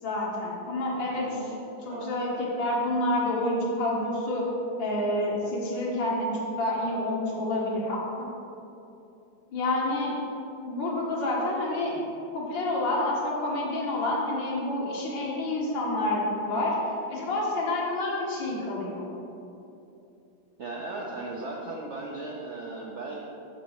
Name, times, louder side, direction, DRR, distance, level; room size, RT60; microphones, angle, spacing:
voice 1, 0.0-1.2 1.8-4.5 4.8-8.3 9.5-10.2 10.6-12.0 12.3-19.1, left 1 dB, 80° left, -3 dB, 2.0 m, -28 dB
voice 2, 1.1-2.1 20.6-23.2, right 2 dB, 70° right, -2 dB, 0.6 m, -37 dB
6.7 x 4.0 x 6.3 m, 2.7 s
omnidirectional pair, 2.0 m